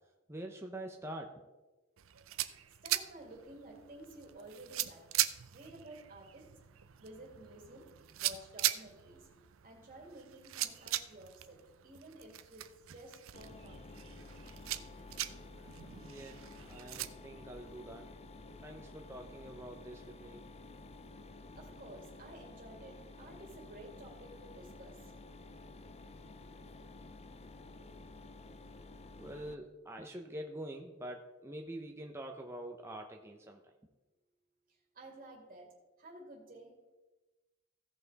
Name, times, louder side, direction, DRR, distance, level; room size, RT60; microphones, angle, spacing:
voice 1, 0.3-1.4 16.1-18.1 18.6-20.5 29.2-33.6, right 1 dB, 15° right, 2 dB, 0.7 m, -45 dB
sound 1, 2.0-17.1, right 14 dB, 75° right, 0.5 m, -40 dB
voice 2, 2.8-5.1 5.5-6.6 7.0-9.3 9.6-13.9 21.5-25.1 34.7-36.8, right 1 dB, 40° right, -1 dB, 2.3 m, -53 dB
Mechanisms, 13.3-29.5, left 2 dB, 30° left, 0.5 m, -52 dB
16.0 x 5.7 x 4.0 m, 1.1 s
head